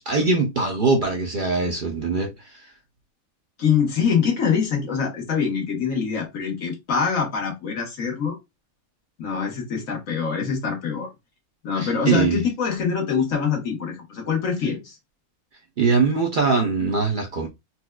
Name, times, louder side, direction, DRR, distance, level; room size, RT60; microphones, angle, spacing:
voice 1, 0.1-2.7 11.8-12.4 15.8-17.5, right 4 dB, 55° right, 0.6 m, -22 dB
voice 2, 3.6-8.4 9.2-11.1 11.6-14.9, left 6 dB, 80° left, 1.6 m, -24 dB
4.2 x 2.3 x 2.2 m
omnidirectional pair, 1.4 m